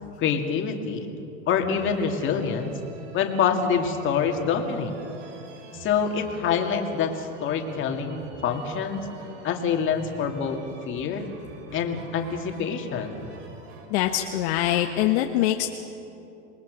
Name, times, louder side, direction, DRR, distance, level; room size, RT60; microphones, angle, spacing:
voice 1, 0.2-1.1 1.5-2.7 3.1-4.9 5.7-9.1 9.4-10.6 10.9-11.2 11.7-13.3, left 6 dB, 30° left, 3 dB, 2.3 m, -26 dB
sound 1, 1.6-13.9, right 4 dB, 65° right, 5.6 m, -45 dB
voice 2, 13.9-15.7, left 13 dB, 55° left, 4 dB, 1.2 m, -23 dB
27.5 x 20.5 x 6.4 m, 2.8 s
supercardioid pair, 140°, 40 cm